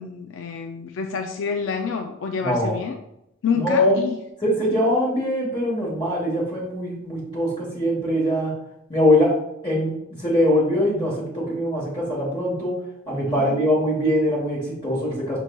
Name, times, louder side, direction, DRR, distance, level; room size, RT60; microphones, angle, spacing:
voice 1, 0.0-3.0 3.4-4.2 13.4-13.6, left 6 dB, 65° left, 4 dB, 0.4 m, -28 dB
voice 2, 2.4-2.8 3.5-4.0 4.4-8.5 8.9-9.3 9.6-12.8 13.1-15.4, left 1 dB, 20° left, -6 dB, 1.1 m, -22 dB
6.0 x 4.0 x 2.2 m, 0.82 s
head